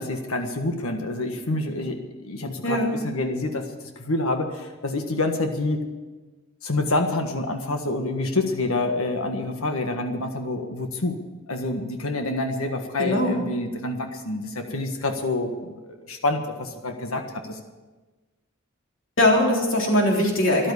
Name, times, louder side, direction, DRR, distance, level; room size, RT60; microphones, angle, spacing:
voice 1, 0.0-3.7 3.9-5.8 6.6-11.2 11.5-17.6, left 2 dB, 85° left, 5 dB, 1.5 m, -27 dB
voice 2, 2.6-2.9 13.0-13.4 19.2-20.7, left 1 dB, 65° left, -1 dB, 3.6 m, -20 dB
13.5 x 12.0 x 8.3 m, 1.2 s
head